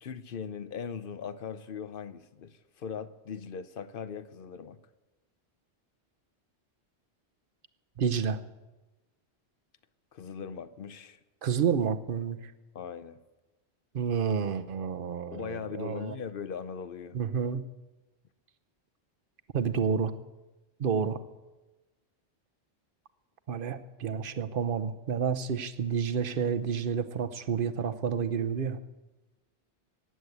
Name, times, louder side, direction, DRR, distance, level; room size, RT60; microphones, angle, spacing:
voice 1, 0.0-4.8 10.1-11.2 12.7-13.2 15.3-17.2, left 6 dB, 55° left, 0.8 m, -39 dB
voice 2, 8.0-8.4 11.4-12.5 13.9-16.1 17.1-17.7 19.5-20.1 20.8-21.2 23.5-28.8, right 7 dB, 55° right, 0.9 m, -30 dB
15.5 x 9.7 x 8.0 m
omnidirectional pair, 1.2 m